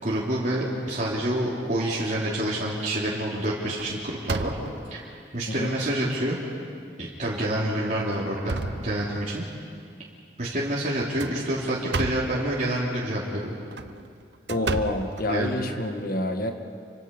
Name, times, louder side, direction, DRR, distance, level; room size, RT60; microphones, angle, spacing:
voice 1, 0.0-4.6 4.9-5.1 5.3-6.4 7.0-9.5 10.4-13.5 15.2-15.6, right 1 dB, 45° right, -7 dB, 3.4 m, -27 dB
sound 1, 1.8-2.4 2.8-3.1 3.4-5.0 5.7-5.8 6.3-6.4 7.3-7.5 8.0-9.4 11.0-12.4 13.5-15.8, right 3 dB, 75° right, 0.9 m, -33 dB
voice 2, 14.5-16.5, left 1 dB, 55° left, 5 dB, 1.9 m, -28 dB
29.5 x 24.5 x 5.5 m, 2.3 s
head